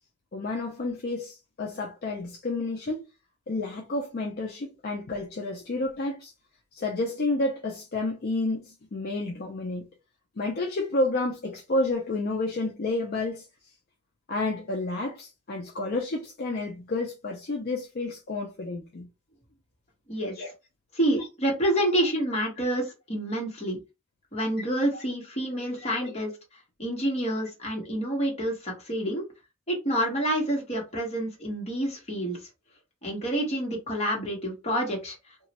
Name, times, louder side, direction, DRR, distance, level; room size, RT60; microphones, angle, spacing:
voice 1, 0.3-3.1 3.5-6.3 6.7-9.9 10.4-13.5 14.3-19.1 20.4-20.5 21.9-22.0 25.8-26.1, left 2 dB, 45° left, 0.5 m, -30 dB
voice 2, 20.9-23.8 24.3-26.3 26.8-29.3 29.7-32.4 33.0-35.2, right 1 dB, 30° left, 1.0 m, -28 dB
3.0 x 2.3 x 2.8 m
head